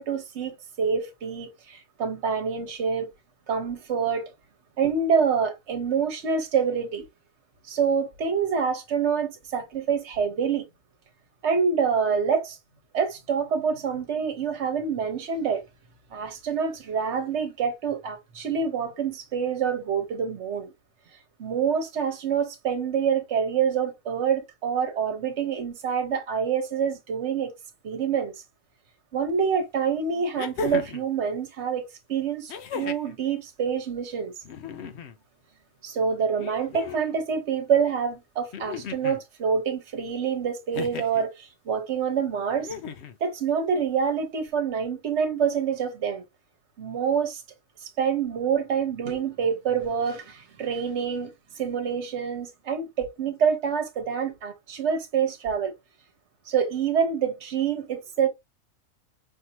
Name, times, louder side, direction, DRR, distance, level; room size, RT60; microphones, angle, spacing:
voice 1, 0.0-3.1 3.5-4.3 4.8-7.0 7.7-10.6 11.4-12.6 12.9-15.6 16.1-20.7 21.4-27.5 27.8-28.3 29.1-34.3 35.8-42.7 43.2-46.2 46.8-47.4 47.8-51.3 51.6-55.7 56.5-58.3, right 6 dB, 50° right, 1.3 m, -26 dB
sound 1, 29.3-29.4 30.4-31.1 32.5-33.2 34.4-35.2 36.4-37.2 38.5-39.2 40.7-41.2 42.6-43.2 44.5-44.6, left 5 dB, 60° left, 0.8 m, -35 dB
5.7 x 2.8 x 2.8 m
omnidirectional pair, 1.6 m